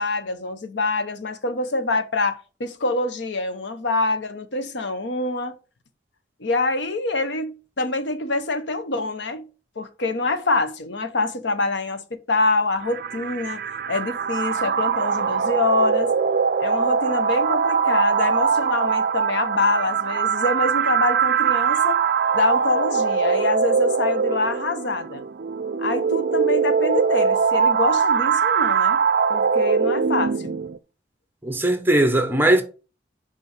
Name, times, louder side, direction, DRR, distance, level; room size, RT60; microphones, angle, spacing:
voice 1, 0.0-5.5 6.4-9.5 9.8-13.6 13.9-16.1 16.6-22.0 22.3-25.2 25.8-29.0 29.3-30.6, left 3 dB, 75° left, 0.9 m, -25 dB
sound 1, 12.8-30.8, right 6 dB, 55° right, 0.4 m, -22 dB
voice 2, 31.4-32.6, right 1 dB, 10° right, 0.9 m, -19 dB
5.4 x 5.3 x 5.1 m
head